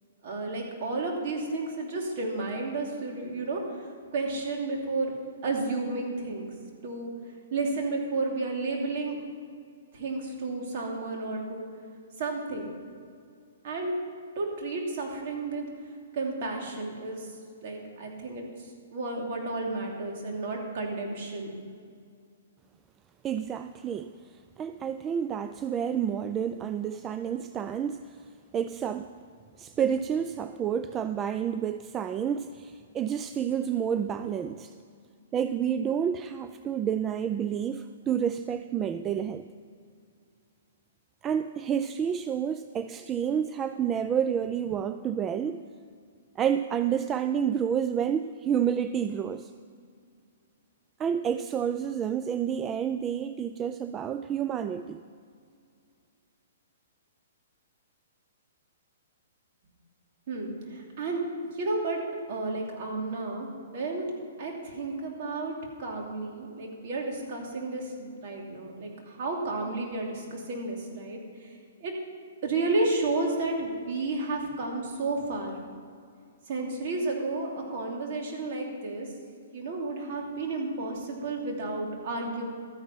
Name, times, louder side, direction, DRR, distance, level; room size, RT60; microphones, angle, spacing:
voice 1, 0.2-3.6 4.1-5.1 5.4-6.5 6.8-7.1 7.5-9.2 9.9-11.6 12.2-12.7 13.6-13.9 14.4-15.6 16.1-17.2 17.6-18.4 18.9-21.5 60.3-61.2 61.6-62.0 62.3-63.5 63.7-64.1 64.4-65.5 65.8-68.9 69.2-71.2 71.8-71.9 72.4-75.6 76.5-79.1 79.5-82.5, right 3 dB, 50° right, 0 dB, 2.9 m, -32 dB
voice 2, 23.2-24.1 24.6-28.2 28.5-29.1 29.6-34.7 35.3-39.5 41.2-45.6 46.4-49.5 51.0-55.0, right 8 dB, 20° right, 10 dB, 0.3 m, -29 dB
13.0 x 9.6 x 5.7 m, 2.2 s
hypercardioid pair, 140°, 0 cm